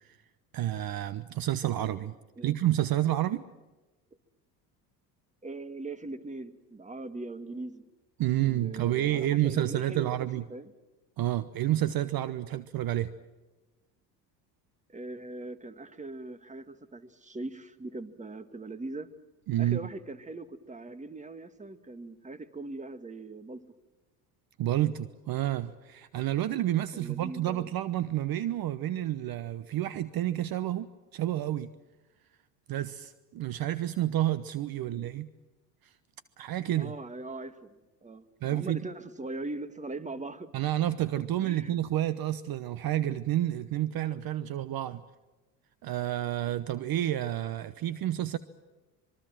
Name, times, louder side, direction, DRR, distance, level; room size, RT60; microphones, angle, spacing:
voice 1, 0.5-2.1 2.4-3.4 8.2-10.4 11.2-13.1 19.5-19.8 24.6-31.7 32.7-35.3 35.8-35.9 36.4-36.9 38.4-38.9 40.5-45.0 45.8-48.4, right 13 dB, 45° right, 15 dB, 1.0 m, -29 dB
voice 2, 5.4-7.9 8.4-10.1 10.5-10.7 14.9-19.1 19.6-23.6 26.9-27.7 34.8-35.1 36.8-40.6 41.4-41.7, right 2 dB, 15° right, 12 dB, 1.8 m, -41 dB
25.5 x 22.5 x 7.6 m, 1.1 s
hypercardioid pair, 75°, 48 cm